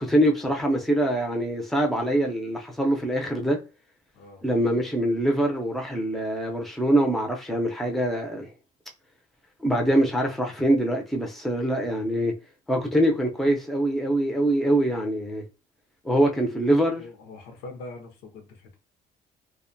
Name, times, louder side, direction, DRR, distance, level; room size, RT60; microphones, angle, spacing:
voice 1, 0.0-3.6 4.4-8.5 9.6-12.3 12.7-15.4 16.0-17.0, right 1 dB, ahead, 0.5 m, -24 dB
voice 2, 17.0-18.8, left 2 dB, 85° left, 0.7 m, -43 dB
2.5 x 2.1 x 2.6 m
cardioid pair, 110°, 17 cm